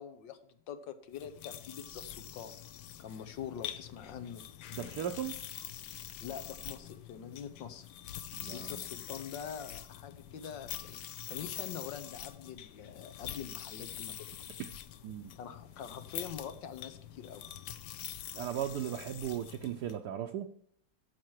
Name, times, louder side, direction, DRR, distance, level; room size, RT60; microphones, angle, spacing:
voice 1, 0.0-2.6 3.0-4.4 6.2-7.9 8.5-14.4 15.4-17.5, left 8 dB, 90° left, 10 dB, 1.6 m, -44 dB
sound 1, 1.1-20.0, left 11 dB, 70° left, 1.2 m, -45 dB
voice 2, 4.8-5.4 8.3-8.8 14.6-14.7 15.0-15.3 18.3-20.5, right 10 dB, 70° right, 4 dB, 1.2 m, -37 dB
13.0 x 6.0 x 4.7 m, 0.66 s
omnidirectional pair, 2.0 m